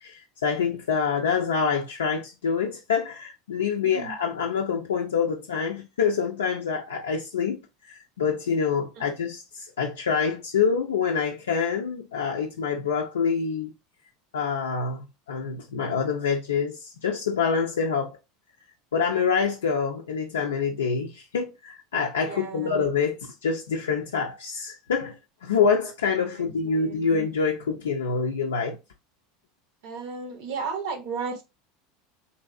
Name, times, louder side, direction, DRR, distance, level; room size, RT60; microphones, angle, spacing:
voice 1, 0.0-7.6 7.9-13.7 14.3-18.2 18.9-28.8, left 6 dB, 75° left, 0.4 m, -26 dB
voice 2, 22.2-22.9 26.3-27.2 29.8-31.4, right 5 dB, 65° right, 0.6 m, -34 dB
3.3 x 2.6 x 2.3 m
figure-of-eight pair, 80°, 0 cm